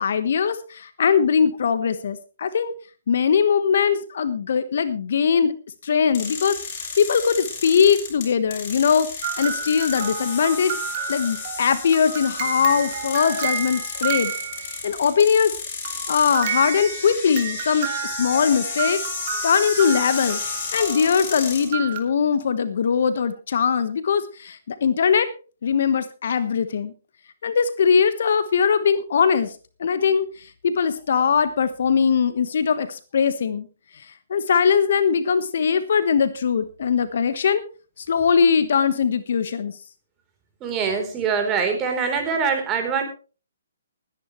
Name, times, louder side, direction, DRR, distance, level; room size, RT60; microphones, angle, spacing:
voice 1, 0.0-2.7 3.1-5.5 5.8-10.8 11.1-14.3 14.6-15.5 16.1-17.9 18.2-19.1 19.4-20.4 20.7-25.3 25.6-26.9 27.4-29.5 29.8-30.2 30.6-33.7 34.3-37.6 38.0-39.7, left 6 dB, 60° left, 12 dB, 1.3 m, -21 dB
sound 1, 6.1-21.7, left 5 dB, 40° left, 7.2 m, -33 dB
gentle music box, 9.2-15.0 15.8-22.0, right 8 dB, 40° right, 2.7 m, -31 dB
voice 2, 40.6-43.0, right 5 dB, 20° right, 4 dB, 3.7 m, -23 dB
21.0 x 10.0 x 3.2 m, 0.35 s
figure-of-eight pair, 135°, 0 cm